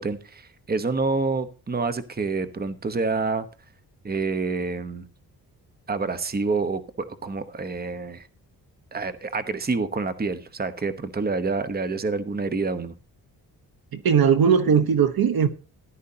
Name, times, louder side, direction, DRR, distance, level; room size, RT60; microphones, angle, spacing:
voice 1, 0.0-3.5 4.0-5.1 5.9-8.3 8.9-12.9, right 4 dB, 25° right, 1.0 m, -27 dB
voice 2, 13.9-15.5, right 7 dB, 60° right, 1.1 m, -19 dB
14.5 x 11.0 x 2.8 m
cardioid pair, 90°, 41 cm